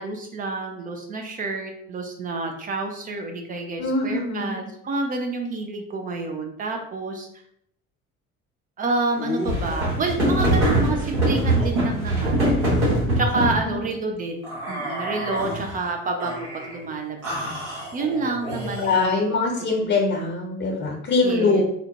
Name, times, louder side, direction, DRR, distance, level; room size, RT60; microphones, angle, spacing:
voice 1, 0.0-7.3 8.8-12.6 13.2-19.2 19.6-19.9 21.2-21.6, right 3 dB, 25° right, 3 dB, 0.3 m, -29 dB
voice 2, 3.8-4.6 13.6-13.7 18.8-21.6, left 3 dB, 30° left, 0 dB, 0.7 m, -23 dB
sound 1, 9.2-13.6 14.4-15.7 16.2-16.8 17.2-19.1, right 1 dB, 80° right, 1.2 m, -24 dB
3.7 x 2.0 x 2.8 m, 0.72 s
figure-of-eight pair, 55°, 42 cm